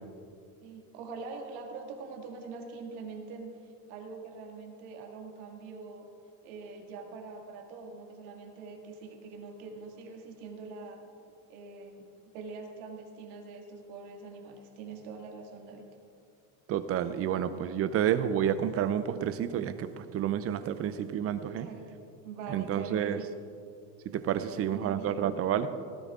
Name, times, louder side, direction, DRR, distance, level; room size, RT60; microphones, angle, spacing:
voice 1, 0.6-6.1 6.4-11.0 11.5-12.1 12.3-15.9 21.6-21.9 22.2-23.3 24.4-25.2, right 4 dB, 75° right, 2 dB, 2.1 m, -44 dB
voice 2, 16.7-21.7 22.5-23.2 24.1-25.7, right 9 dB, 35° right, 12 dB, 0.6 m, -30 dB
17.5 x 11.5 x 3.7 m, 2.4 s
supercardioid pair, 135°, 43 cm